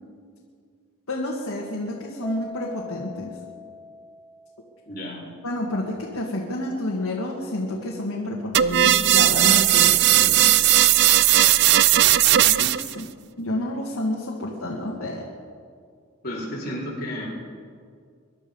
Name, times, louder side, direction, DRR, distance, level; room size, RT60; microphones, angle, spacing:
voice 1, 1.1-3.3 5.4-10.5 12.4-13.1 13.4-15.2, left 1 dB, 80° left, -2 dB, 1.8 m, -29 dB
Keyboard (musical), 2.2-4.7, left 3 dB, 5° left, 1.5 m, -40 dB
voice 2, 4.9-5.2 16.2-17.3, equal, 40° left, -5 dB, 4.2 m, -32 dB
sound 1, 8.5-12.9, right 13 dB, 50° right, 0.3 m, -17 dB
22.5 x 11.5 x 5.4 m, 2.2 s
head